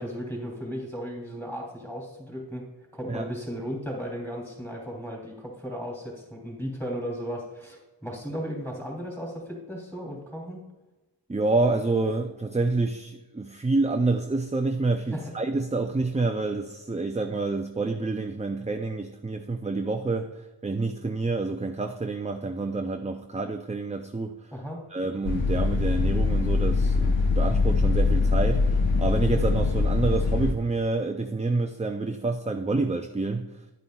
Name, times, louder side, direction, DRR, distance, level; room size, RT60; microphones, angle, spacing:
voice 1, 0.0-2.7 2.9-10.6 15.1-15.3 24.5-24.8, equal, 5° left, -1 dB, 3.1 m, -35 dB
voice 2, 11.3-24.5 24.9-33.5, right 3 dB, 15° right, 5 dB, 0.4 m, -28 dB
sound 1, 25.2-30.5, left 3 dB, 90° left, 0.9 m, -23 dB
10.5 x 9.3 x 2.3 m, 1.1 s
wide cardioid pair, 60°, 44 cm